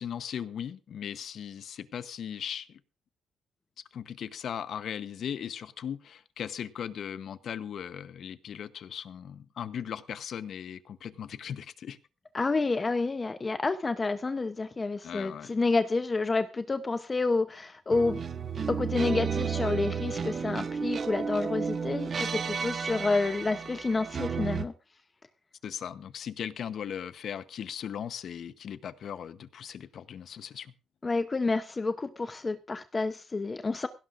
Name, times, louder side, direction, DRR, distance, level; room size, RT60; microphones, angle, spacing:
voice 1, 0.0-2.8 3.9-12.0 15.0-15.5 25.6-30.7, left 8 dB, 60° left, 0.9 m, -38 dB
voice 2, 12.3-18.2 18.7-24.7 31.0-33.9, left 3 dB, 25° left, 0.8 m, -29 dB
sound 1, 17.9-24.7, right 6 dB, 40° right, 1.1 m, -32 dB
17.0 x 16.5 x 2.6 m
cardioid pair, 120°, 0 cm